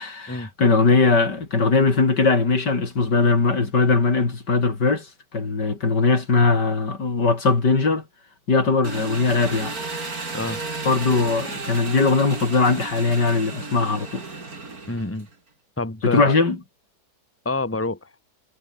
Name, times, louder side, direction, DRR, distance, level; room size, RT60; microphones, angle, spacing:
voice 1, 0.0-8.0 8.5-9.7 10.9-14.2 16.0-16.6, left 4 dB, 75° left, 4.3 m, -20 dB
Engine, 8.8-15.3, right 3 dB, 55° right, 4.1 m, -33 dB
voice 2, 14.9-15.3 15.8-16.4 17.4-18.1, left 2 dB, 5° left, 2.4 m, -27 dB
omnidirectional pair, 1.9 m